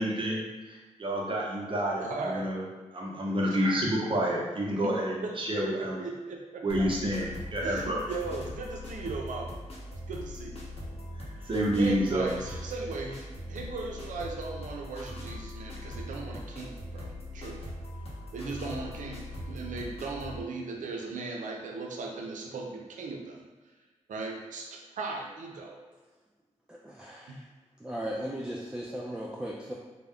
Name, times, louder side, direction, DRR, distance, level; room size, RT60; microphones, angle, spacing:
voice 1, 0.0-2.6 2.9-6.0 6.6-8.0 11.2-12.3, right 1 dB, 40° right, -3 dB, 0.7 m, -29 dB
voice 2, 2.0-2.5 4.8-4.9 5.2-6.9 7.6-9.6 10.1-10.7 11.4-11.5 11.8-17.7 18.3-23.5 24.1-25.8 27.3-27.4, right 3 dB, 80° right, 0 dB, 0.5 m, -38 dB
sound 1, 6.7-20.4, left 1 dB, 50° left, 0.8 m, -41 dB
voice 3, 26.7-27.4 27.8-29.7, equal, 5° right, -3 dB, 0.3 m, -37 dB
2.3 x 2.1 x 3.4 m, 1.3 s
cardioid pair, 75°, 13 cm